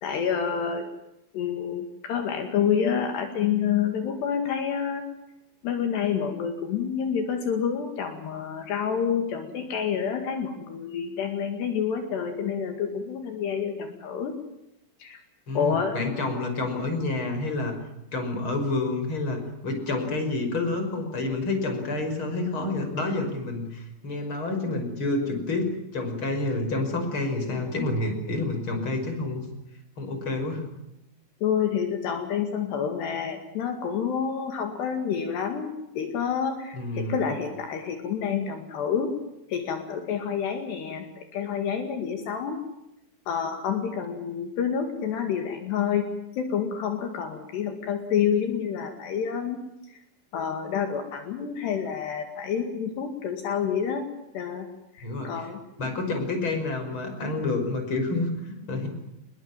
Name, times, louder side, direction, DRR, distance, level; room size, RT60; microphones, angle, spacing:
voice 1, 0.0-0.9 1.3-5.0 5.6-14.4 15.0-15.2 15.5-15.9 31.4-39.1 39.5-42.6 43.3-46.1 46.4-49.6 49.9-50.0 50.3-54.1 54.3-54.7 55.0-55.6, left 7 dB, 70° left, 5 dB, 4.2 m, -28 dB
voice 2, 15.5-17.7 18.1-29.4 30.0-30.6 36.7-37.2 55.0-55.5 55.8-58.9, left 2 dB, 30° left, 6 dB, 6.1 m, -29 dB
28.0 x 21.5 x 7.5 m, 0.88 s
omnidirectional pair, 5.1 m